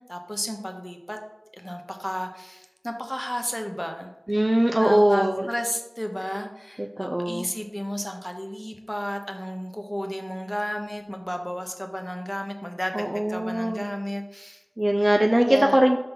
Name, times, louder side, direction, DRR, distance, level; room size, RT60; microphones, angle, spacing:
voice 1, 0.1-1.2 1.5-4.1 4.8-14.6 15.4-15.8, equal, 5° left, 4 dB, 0.8 m, -32 dB
voice 2, 4.3-5.5 6.8-7.5 12.9-13.9 14.8-16.0, right 1 dB, 25° right, 3 dB, 0.4 m, -21 dB
5.7 x 3.8 x 5.3 m, 0.97 s
wide cardioid pair, 60°, 0 cm